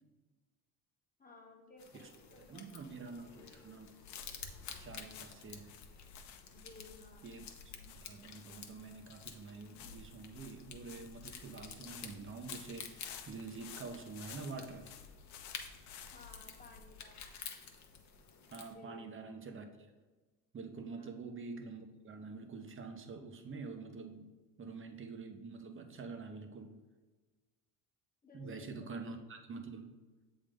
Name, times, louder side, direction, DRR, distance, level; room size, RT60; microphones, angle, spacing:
voice 1, 1.2-2.7 3.0-3.3 6.5-7.3 16.1-17.4 18.7-19.1 20.9-21.1 28.2-29.0, left 2 dB, 20° left, 1 dB, 1.2 m, -57 dB
sound 1, 1.8-18.7, left 6 dB, 40° left, 0.9 m, -52 dB
voice 2, 1.9-3.9 4.8-5.7 7.2-14.9 18.5-19.9 20.5-24.3 24.6-26.8 28.3-30.0, right 4 dB, 30° right, 6 dB, 0.8 m, -47 dB
sound 2, 2.8-18.2, left 7 dB, 70° left, 0.8 m, -54 dB
7.2 x 3.6 x 3.6 m, 1.3 s
hypercardioid pair, 70°, 43 cm